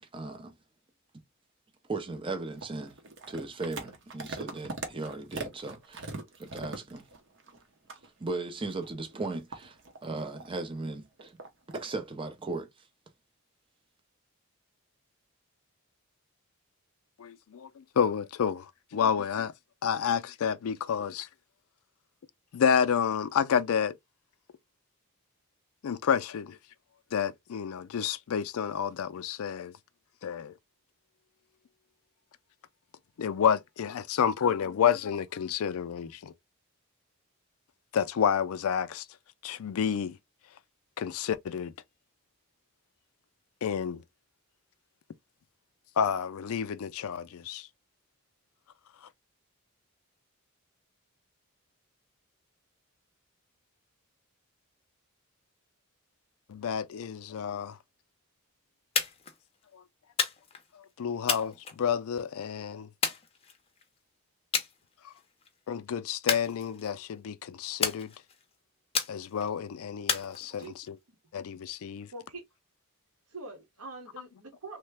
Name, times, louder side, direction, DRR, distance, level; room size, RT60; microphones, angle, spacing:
voice 1, 0.1-0.5 1.9-3.0 3.3-6.1 6.4-7.0 8.2-11.4 11.7-12.7, right 3 dB, 25° right, 0.5 m, -37 dB
sound 1, 2.5-7.6 7.9-8.1 8.6-10.7 11.2-11.9, right 3 dB, 55° right, 0.7 m, -41 dB
voice 2, 17.2-17.7 18.0-18.7 18.9-19.5 19.8-21.3 22.5-23.9 25.8-26.6 27.1-29.7 30.2-30.5 33.2-36.3 37.9-39.0 39.4-40.2 41.0-41.7 43.6-44.0 46.0-47.7 56.5-57.8 61.0-62.9 65.7-68.1 69.1-71.0 71.3-72.1, left 7 dB, 70° left, 0.4 m, -29 dB
sound 2, 59.0-59.4 60.2-60.7 61.3-62.2 63.0-63.8 64.5-64.7 65.1-65.5 66.3-67.1 67.8-68.4 68.9-69.5 70.1-70.9, left 6 dB, 25° left, 0.6 m, -32 dB
voice 3, 72.1-72.4 73.3-74.8, right 3 dB, 90° right, 1.1 m, -44 dB
3.2 x 2.1 x 3.2 m
head